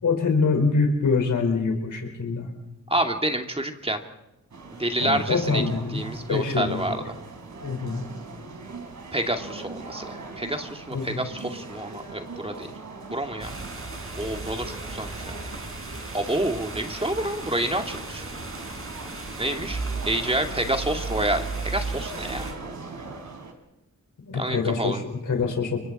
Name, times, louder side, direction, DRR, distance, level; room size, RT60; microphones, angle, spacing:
voice 1, 0.0-2.5 5.0-6.0 6.3-7.0 7.6-8.0 10.9-11.3 24.2-25.8, left 4 dB, 85° left, 4 dB, 4.8 m, -25 dB
voice 2, 2.9-4.0 4.8-5.6 5.9-7.0 9.1-12.7 13.1-13.5 14.1-15.1 16.1-18.3 19.4-19.8 20.1-22.5 24.3-25.0, right 1 dB, 20° right, 4 dB, 2.3 m, -28 dB
sound 1, 4.5-23.5, right 3 dB, 70° right, 3.4 m, -41 dB
sound 2, 13.4-22.5, right 3 dB, 45° right, 5.2 m, -35 dB
29.0 x 23.5 x 4.2 m, 0.91 s
cardioid pair, 70°, 30 cm